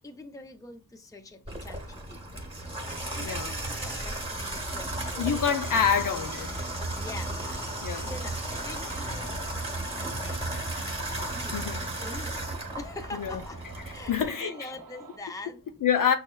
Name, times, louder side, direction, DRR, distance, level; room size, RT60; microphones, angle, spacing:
voice 1, 0.0-2.4 2.9-5.5 6.1-6.4 7.0-7.3 7.9-9.3 10.2-10.7 11.1-12.3 12.8-13.6 13.9-15.8, left 2 dB, 10° left, 0.5 m, -44 dB
Water tap faucet / Bathtub (filling or washing), 1.5-14.3, right 1 dB, 15° right, 1.0 m, -34 dB
voice 2, 5.2-6.5 7.8-8.1 11.5-11.8 13.1-13.4 14.1-14.5 15.8-16.1, left 7 dB, 55° left, 0.5 m, -26 dB
sound 1, 8.5-15.2, right 5 dB, 60° right, 0.7 m, -49 dB
6.2 x 2.1 x 2.2 m
cardioid pair, 55°, 39 cm